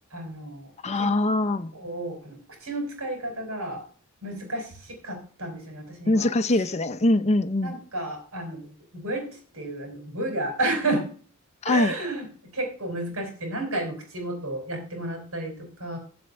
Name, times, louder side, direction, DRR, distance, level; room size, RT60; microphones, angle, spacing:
voice 1, 0.1-1.1 1.7-3.8 4.2-6.6 7.6-11.1 11.6-12.3 12.5-16.0, right 2 dB, 80° right, 4.9 m, -32 dB
voice 2, 0.8-1.7 6.1-7.8 11.6-11.9, left 2 dB, 30° left, 0.6 m, -23 dB
7.9 x 7.8 x 6.4 m
head